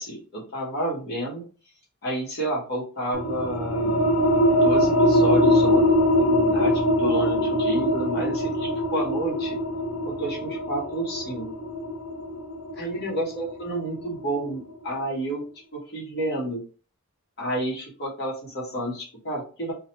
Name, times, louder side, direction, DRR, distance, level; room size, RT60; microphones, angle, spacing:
voice 1, 0.0-1.4 2.0-3.9 4.5-5.8 6.2-9.6 10.0-11.5 12.8-15.4 15.7-16.6 17.4-19.7, right 1 dB, 45° left, -4 dB, 1.0 m, -30 dB
sound 1, 3.1-14.4, equal, 65° left, 0.6 m, -22 dB
3.1 x 2.2 x 2.8 m, 0.39 s
head